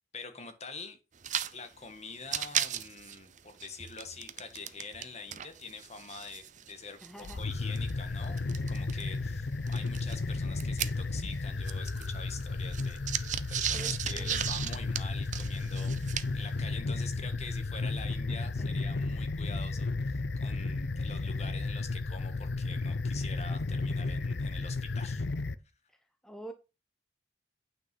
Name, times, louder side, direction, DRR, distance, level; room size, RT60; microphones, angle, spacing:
voice 1, 0.1-1.0 1.5-25.3, left 4 dB, 40° left, 1.8 m, -45 dB
sound 1, 1.2-1.5 1.8-1.9 2.2-5.1 5.3-9.0 9.7-11.4 11.6-16.5, right 10 dB, 45° right, 0.7 m, -36 dB
voice 2, 7.0-7.5 13.7-14.6 18.6-18.7 25.9-26.0 26.2-26.5, right 1 dB, 5° left, 0.8 m, -46 dB
sound 2, 7.2-25.6, left 3 dB, 80° left, 0.7 m, -33 dB
9.1 x 5.7 x 5.4 m
head